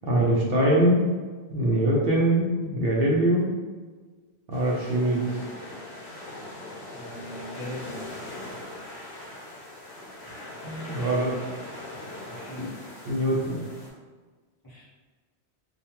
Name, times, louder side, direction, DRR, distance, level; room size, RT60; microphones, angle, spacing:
voice 1, 0.1-1.0 1.5-3.5 4.5-5.3 10.6-11.3 12.6-12.7 13.0-13.6, right 1 dB, 65° right, -3 dB, 0.7 m, -23 dB
sound 1, 4.5-13.9, left 1 dB, 75° left, 1.0 m, -41 dB
voice 2, 6.9-8.0 12.3-12.7 14.6-14.9, equal, 25° left, -10 dB, 0.7 m, -40 dB
2.4 x 2.3 x 2.8 m, 1.4 s
omnidirectional pair, 1.1 m